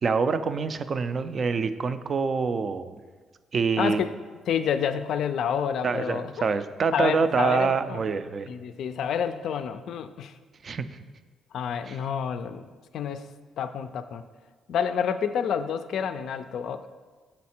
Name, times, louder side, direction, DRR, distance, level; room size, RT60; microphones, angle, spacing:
voice 1, 0.0-3.0 3.5-4.0 5.8-8.5 10.6-10.9 11.9-12.0, right 5 dB, 45° right, 12 dB, 0.3 m, -26 dB
voice 2, 3.8-4.1 4.5-6.5 6.9-8.1 8.5-10.3 11.5-12.7 12.9-13.3 13.6-14.2 14.7-16.9, left 7 dB, 70° left, 10 dB, 0.3 m, -29 dB
6.3 x 4.2 x 4.3 m, 1.4 s
cardioid pair, 90°, 0 cm